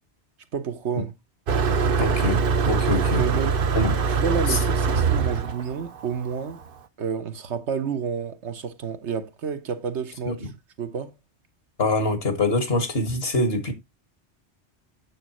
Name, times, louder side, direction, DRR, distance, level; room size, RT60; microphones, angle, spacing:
voice 1, 0.5-1.1 3.2-3.6 4.1-6.6 7.0-10.5 10.8-11.1, right 6 dB, 75° right, 1.3 m, -30 dB
Motor vehicle (road), 1.5-6.6, right 5 dB, 55° right, 0.9 m, -23 dB
voice 2, 2.0-3.2 3.7-3.9 10.3-10.4 11.8-13.7, left 2 dB, 60° left, 1.9 m, -24 dB
8.7 x 7.2 x 2.9 m
omnidirectional pair, 1.2 m